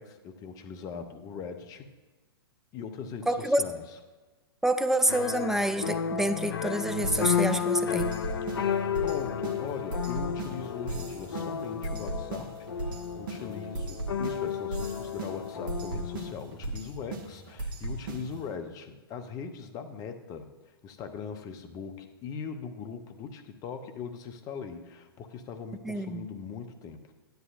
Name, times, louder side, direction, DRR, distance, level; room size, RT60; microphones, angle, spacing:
voice 1, 0.0-1.9 2.7-3.8 9.0-20.5 20.8-27.0, left 6 dB, 25° left, 6 dB, 0.9 m, -40 dB
voice 2, 3.3-3.6 4.6-8.1 25.8-26.3, right 1 dB, 5° right, 10 dB, 0.3 m, -27 dB
sound 1, 5.1-16.3, left 7 dB, 70° left, 0.5 m, -32 dB
sound 2, 7.0-18.5, right 2 dB, 55° right, 1.2 m, -38 dB
12.5 x 10.5 x 2.6 m, 1.3 s
figure-of-eight pair, 110°, 13 cm